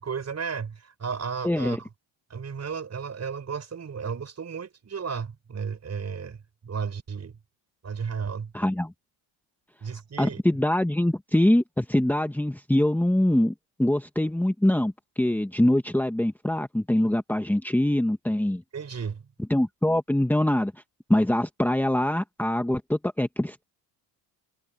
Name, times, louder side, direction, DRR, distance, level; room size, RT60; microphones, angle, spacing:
voice 1, 0.0-1.8 2.3-6.4 6.6-7.4 7.8-8.5 9.8-10.4 18.7-19.3, right 6 dB, 35° right, 5.8 m, -33 dB
voice 2, 1.4-1.8 8.5-8.9 10.2-13.5 13.8-18.6 19.5-20.7 21.1-23.6, left 1 dB, 5° left, 1.7 m, -23 dB
cardioid pair, 95°, 45 cm